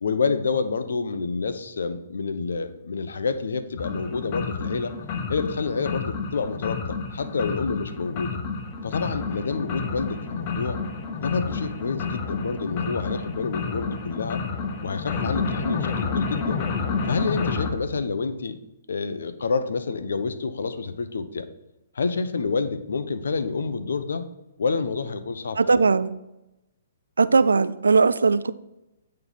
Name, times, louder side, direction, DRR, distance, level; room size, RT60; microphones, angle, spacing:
voice 1, 0.0-4.9 5.3-8.4 8.8-10.8 11.2-14.4 14.8-16.6 17.0-18.6 18.9-21.5 21.9-24.3 24.6-25.8, left 4 dB, 70° left, 11 dB, 0.6 m, -28 dB
sound 1, 3.8-17.7, left 5 dB, 40° left, 0.8 m, -30 dB
voice 2, 25.6-26.1 27.2-28.5, right 4 dB, 80° right, 14 dB, 0.3 m, -19 dB
8.7 x 3.1 x 4.2 m, 0.92 s
figure-of-eight pair, 125°, 0 cm